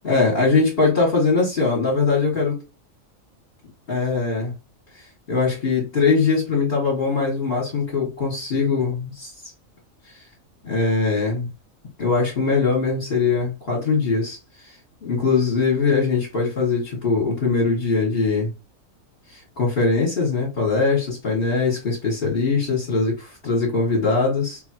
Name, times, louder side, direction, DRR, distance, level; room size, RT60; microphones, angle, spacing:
voice 1, 0.0-2.6 3.9-4.5 4.9-9.3 10.1-10.2 10.6-11.5 12.0-14.8 15.0-18.5 19.3-24.6, left 4 dB, 45° left, 2.2 m, -21 dB
4.1 x 3.9 x 3.0 m
omnidirectional pair, 1.4 m